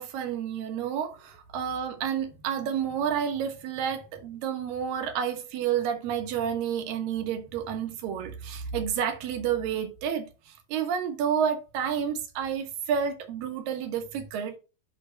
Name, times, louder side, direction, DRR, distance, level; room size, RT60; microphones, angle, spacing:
voice 1, 0.0-14.6, right 8 dB, 80° right, 3.0 m, -30 dB
11.5 x 5.3 x 2.2 m
omnidirectional pair, 4.0 m